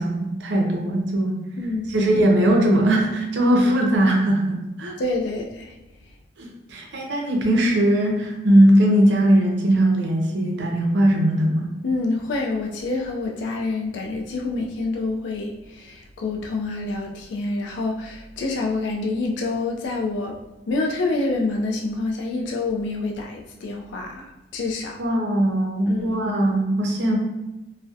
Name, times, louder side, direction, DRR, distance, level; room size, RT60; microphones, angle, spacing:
voice 1, 0.0-1.4 1.9-5.0 6.4-11.7 25.0-27.2, right 1 dB, 70° right, 0 dB, 0.5 m, -19 dB
voice 2, 1.6-1.9 5.0-5.7 11.8-20.3 20.7-25.0 25.9-26.1, left 3 dB, 75° left, 1 dB, 0.3 m, -27 dB
2.5 x 2.0 x 2.3 m, 1.0 s
head